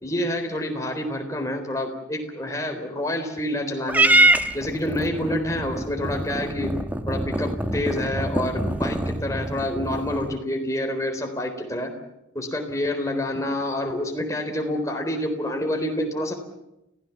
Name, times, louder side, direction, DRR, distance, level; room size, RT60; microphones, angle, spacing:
voice 1, 0.0-4.2 4.5-6.8 7.1-11.9 12.3-16.3, left 1 dB, 15° left, 3 dB, 3.9 m, -28 dB
Purr / Meow, 3.9-10.4, right 1 dB, 10° right, 1.1 m, -24 dB
30.0 x 17.0 x 7.2 m, 0.91 s
head